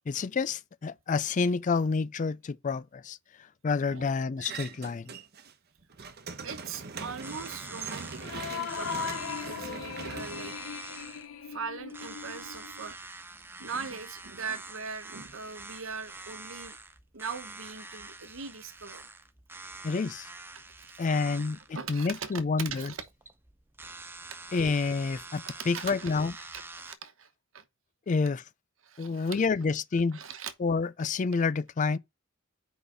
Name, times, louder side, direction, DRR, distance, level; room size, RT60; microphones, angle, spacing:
voice 1, 0.1-3.2 3.6-5.1 19.8-20.3 21.0-22.9 24.5-26.3 28.1-28.4 29.0-30.2 30.6-32.0, left 4 dB, 40° left, 0.4 m, -28 dB
voice 2, 3.9-4.2 6.4-9.1 9.5-10.5 11.4-13.0 13.6-16.8 17.1-19.1 20.5-22.3 22.7-23.0 25.4-27.6 28.8-29.5 30.1-30.5, right 5 dB, 75° right, 1.1 m, -41 dB
sound 1, 4.4-5.5 5.8-11.2, right 5 dB, 50° right, 1.0 m, -42 dB
sound 2, 7.2-27.0, right 3 dB, 10° right, 0.6 m, -46 dB
sound 3, 8.2-12.9, left 7 dB, 90° left, 0.8 m, -38 dB
4.9 x 4.9 x 6.1 m
head